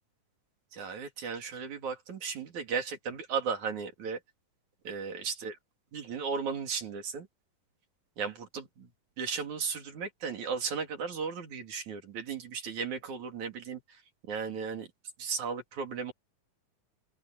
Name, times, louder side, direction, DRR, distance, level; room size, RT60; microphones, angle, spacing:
voice 1, 0.7-4.2 4.9-5.6 5.9-7.3 8.2-8.9 9.2-14.0 14.3-14.9 15.2-16.1, right 6 dB, 65° right, 4.1 m, -35 dB
open air
omnidirectional pair, 3.8 m